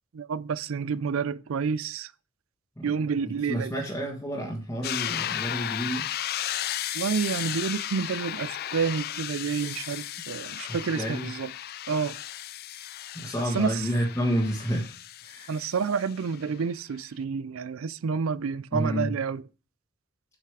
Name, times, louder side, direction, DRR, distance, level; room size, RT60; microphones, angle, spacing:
voice 1, 0.1-2.1 2.8-3.7 6.9-11.5 11.9-12.2 13.5-13.8 15.5-19.4, right 6 dB, 80° right, 0.4 m, -29 dB
voice 2, 3.5-6.1 10.9-11.3 13.1-15.0 15.2-15.5 18.7-19.1, equal, 15° left, 1.5 m, -29 dB
sound 1, 4.8-16.5, left 12 dB, 50° left, 0.3 m, -35 dB
8.0 x 5.8 x 4.7 m
head